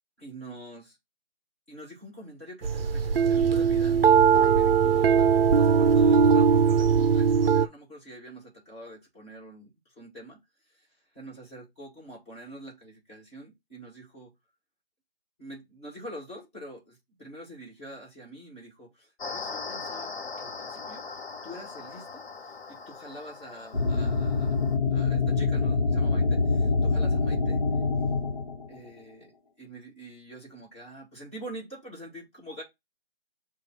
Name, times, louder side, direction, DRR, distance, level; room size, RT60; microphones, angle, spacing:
voice 1, 0.2-1.0 1.7-5.2 5.6-14.3 15.4-20.1 20.4-21.0 21.4-24.6 24.9-27.6 28.7-29.3 29.6-32.6, right 1 dB, 15° left, 2.0 m, -45 dB
sound 1, 2.6-7.7, right 6 dB, 65° right, 0.5 m, -20 dB
sound 2, 19.2-24.8, left 4 dB, 70° left, 1.0 m, -40 dB
sound 3, 23.7-28.8, left 4 dB, 50° left, 1.3 m, -25 dB
7.2 x 2.5 x 2.9 m
hypercardioid pair, 180°, 32 cm